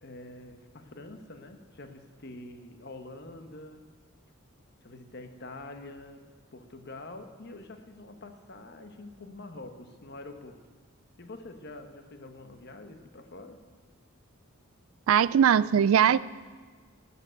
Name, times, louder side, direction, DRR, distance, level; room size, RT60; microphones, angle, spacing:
voice 1, 0.0-3.9 4.8-10.6 11.2-13.6, left 2 dB, 50° left, 7 dB, 1.1 m, -46 dB
voice 2, 15.1-16.2, right 8 dB, 70° right, 19 dB, 0.3 m, -20 dB
13.0 x 8.1 x 9.0 m, 1.5 s
head